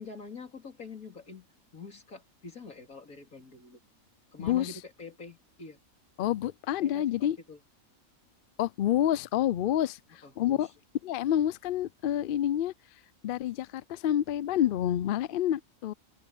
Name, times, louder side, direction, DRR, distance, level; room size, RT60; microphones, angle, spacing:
voice 1, 0.0-1.5 1.7-3.8 4.3-5.8 6.8-7.6 10.2-10.7, left 4 dB, 90° left, 4.1 m, -45 dB
voice 2, 4.4-4.8 6.2-7.4 8.6-10.7 11.0-12.7 13.2-15.9, left 11 dB, 70° left, 0.5 m, -28 dB
omnidirectional pair, 1.4 m